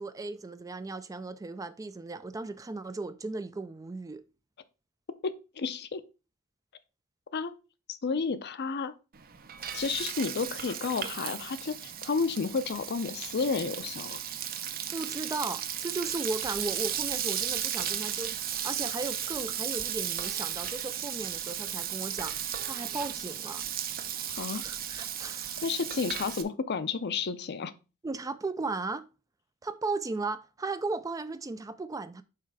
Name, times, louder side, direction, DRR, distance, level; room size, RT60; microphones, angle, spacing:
voice 1, 0.0-4.2 14.9-22.3 22.6-23.6 24.5-25.6 28.0-29.1 29.6-32.2, right 3 dB, 15° right, 0.3 m, -36 dB
voice 2, 5.2-6.0 7.3-7.5 7.9-8.9 9.7-14.2 24.2-24.6 25.6-27.7, left 5 dB, 50° left, 0.5 m, -31 dB
Frying (food), 9.1-26.4, right 9 dB, 45° right, 0.7 m, -35 dB
5.7 x 4.2 x 4.8 m
head